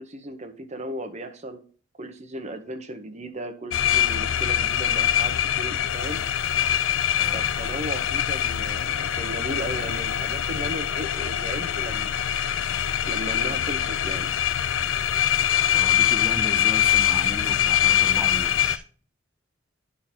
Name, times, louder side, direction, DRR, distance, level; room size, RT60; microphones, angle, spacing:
voice 1, 0.0-1.6 2.0-6.2 7.3-12.5 13.1-14.3, right 1 dB, 35° right, 6 dB, 0.9 m, -36 dB
sound 1, 3.7-18.8, left 11 dB, 65° left, 0.4 m, -23 dB
voice 2, 7.2-7.5 15.7-18.8, equal, 5° right, 7 dB, 0.6 m, -35 dB
10.0 x 3.9 x 4.3 m, 0.42 s
head